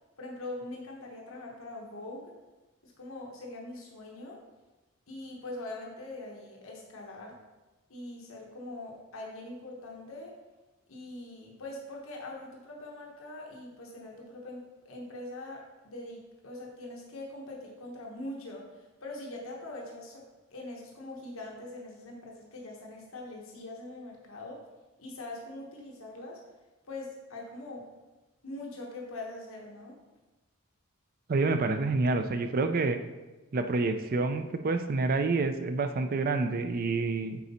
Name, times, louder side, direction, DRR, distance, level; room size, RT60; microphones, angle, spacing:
voice 1, 0.2-2.4 2.8-4.4 5.1-7.4 7.9-10.4 10.9-20.2 20.5-24.6 25.0-26.4 26.9-27.9 28.4-30.0, left 2 dB, 70° left, -1 dB, 1.2 m, -42 dB
voice 2, 31.3-33.0 33.5-37.4, right 3 dB, 45° right, 8 dB, 0.4 m, -28 dB
9.2 x 4.0 x 4.2 m, 1.1 s
head